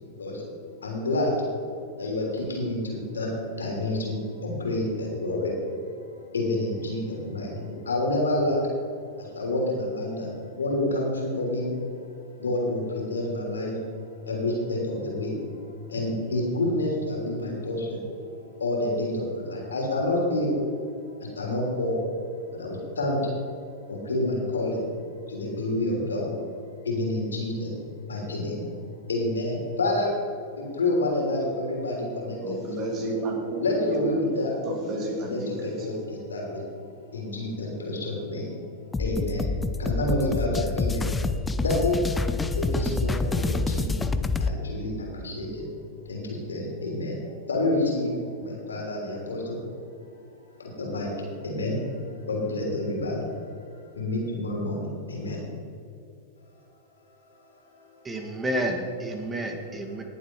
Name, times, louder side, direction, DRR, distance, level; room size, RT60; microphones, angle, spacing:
voice 1, 0.1-8.8 9.2-12.0 12.3-24.9 25.3-26.3 26.8-27.8 28.0-28.6 29.1-30.2 30.4-33.2 33.6-34.6 35.2-38.6 38.9-41.1 41.6-42.0 42.5-47.2 47.5-49.6 50.6-53.3 53.9-55.5 57.7-58.2, left 1 dB, 85° left, -1 dB, 3.4 m, -29 dB
voice 2, 32.4-34.2 34.6-35.8, right 2 dB, 40° right, 1 dB, 3.0 m, -31 dB
sound 1, 38.9-44.5, left 3 dB, 10° left, 0.6 m, -27 dB
voice 3, 58.0-60.0, right 1 dB, 15° right, 4 dB, 1.7 m, -30 dB
18.5 x 7.3 x 4.7 m, 2.5 s
hypercardioid pair, 100°, 0 cm